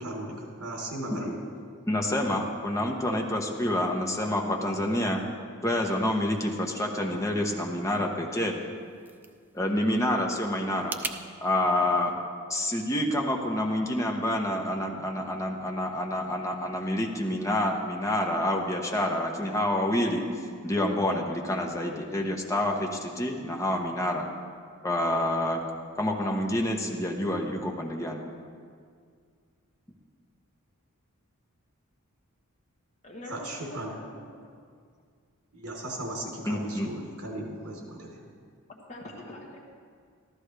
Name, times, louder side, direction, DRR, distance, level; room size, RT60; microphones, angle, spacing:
voice 1, 0.0-1.4 33.3-33.9 35.5-38.2, right 1 dB, 85° right, -2 dB, 3.4 m, -37 dB
voice 2, 1.9-5.2 5.6-8.6 9.5-11.0 11.4-12.1 12.5-20.2 20.6-24.3 24.8-25.6 26.0-28.2 36.5-36.9, left 1 dB, 15° left, 1 dB, 1.0 m, -28 dB
sound 1, 8.6-11.2, right 3 dB, 10° right, 0.3 m, -40 dB
voice 3, 33.0-34.4 38.7-39.6, left 1 dB, 30° left, -1 dB, 1.2 m, -43 dB
14.0 x 13.0 x 3.4 m, 2.1 s
head